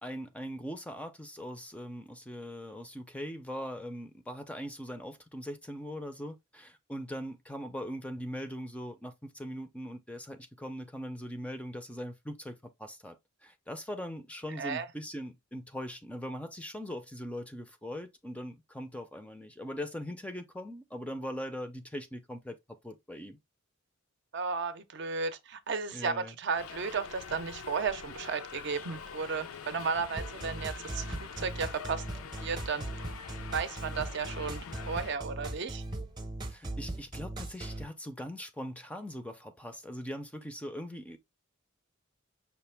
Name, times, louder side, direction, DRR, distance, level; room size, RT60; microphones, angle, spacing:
voice 1, 0.0-13.2 13.4-22.6 22.8-23.4 25.9-26.3 36.5-41.2, equal, 5° left, 0.5 m, -41 dB
voice 2, 24.3-32.0 32.4-32.9 33.5-35.8, right 5 dB, 55° right, 0.6 m, -34 dB
Subway metro underground, 26.6-35.2, left 6 dB, 85° left, 0.5 m, -45 dB
sound 1, 30.2-37.8, right 1 dB, 20° right, 0.7 m, -39 dB
5.8 x 2.5 x 3.3 m
head